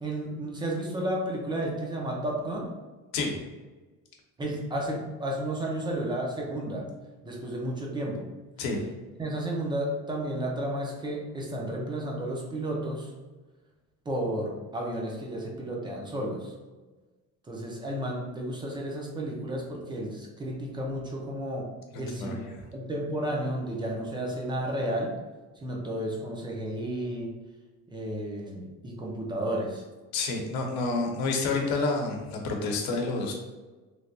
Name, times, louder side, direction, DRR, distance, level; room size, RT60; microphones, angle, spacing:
voice 1, 0.0-2.7 4.4-6.9 7.2-8.3 9.2-13.1 14.1-16.5 17.5-25.2 25.6-27.3 27.9-29.8, right 1 dB, 15° right, -1 dB, 0.3 m, -32 dB
voice 2, 21.9-22.6 30.1-33.3, left 3 dB, 75° left, 2 dB, 0.8 m, -29 dB
3.2 x 2.7 x 2.6 m, 1.2 s
cardioid pair, 150°, 37 cm